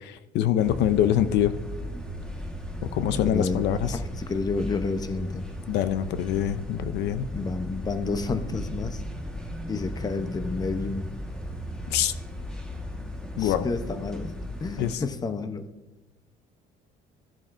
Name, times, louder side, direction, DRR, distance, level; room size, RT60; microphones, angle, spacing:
voice 1, 0.0-1.5 2.9-3.9 5.7-7.3 11.9-12.1 13.4-13.7 14.8-15.0, left 11 dB, 75° left, 12 dB, 0.6 m, -24 dB
sound 1, 0.6-14.9, equal, 5° left, 1.4 m, -36 dB
voice 2, 3.1-5.5 7.3-9.0 9.7-11.1 13.4-15.7, left 4 dB, 20° left, 10 dB, 0.7 m, -30 dB
15.0 x 7.1 x 2.6 m, 1.0 s
cardioid pair, 120°, 18 cm